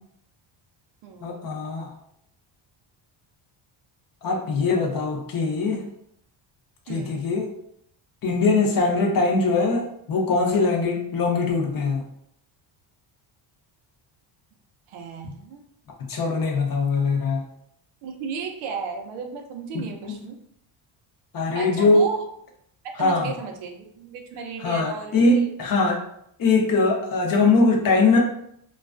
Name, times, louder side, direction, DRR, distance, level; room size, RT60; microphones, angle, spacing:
voice 1, 1.2-1.9 4.2-5.8 6.9-7.5 8.2-12.0 16.1-17.4 20.1-20.2 21.3-22.1 23.0-23.3 24.6-26.0 26.4-28.2, left 3 dB, 45° left, 1 dB, 0.6 m, -21 dB
voice 2, 6.9-7.2 14.9-15.6 18.0-20.4 21.5-22.2 22.8-25.5, right 5 dB, 80° right, 3 dB, 0.6 m, -34 dB
2.3 x 2.2 x 2.4 m, 0.71 s
cardioid pair, 85°, 50 cm